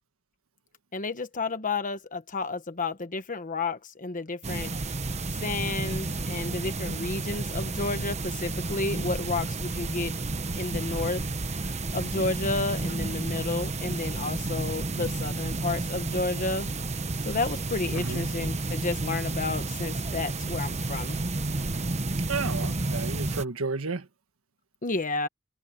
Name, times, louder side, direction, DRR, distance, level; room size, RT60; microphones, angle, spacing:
voice 1, 0.9-4.7 5.4-10.1 10.5-11.2 11.9-16.7 17.2-21.2 24.8-25.3, left 3 dB, 35° left, 1.2 m, -31 dB
sound 1, 4.4-23.5, right 2 dB, 30° right, 1.1 m, -31 dB
voice 2, 17.9-18.3 22.3-24.1, right 4 dB, 65° right, 1.6 m, -32 dB
head